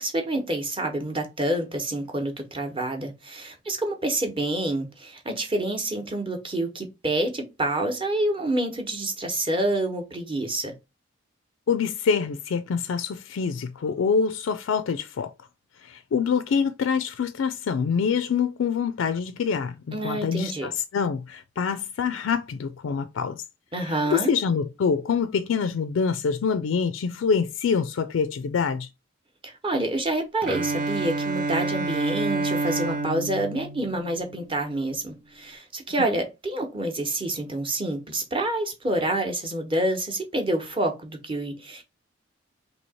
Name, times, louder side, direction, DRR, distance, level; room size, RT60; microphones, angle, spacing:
voice 1, 0.0-10.8 19.9-20.7 23.7-24.3 29.4-41.8, right 1 dB, 25° right, 0.9 m, -28 dB
voice 2, 11.7-15.3 15.8-23.4 24.1-28.9, left 6 dB, 85° left, 0.4 m, -25 dB
Bowed string instrument, 30.4-34.5, right 3 dB, 45° right, 0.4 m, -28 dB
3.1 x 2.8 x 4.1 m
head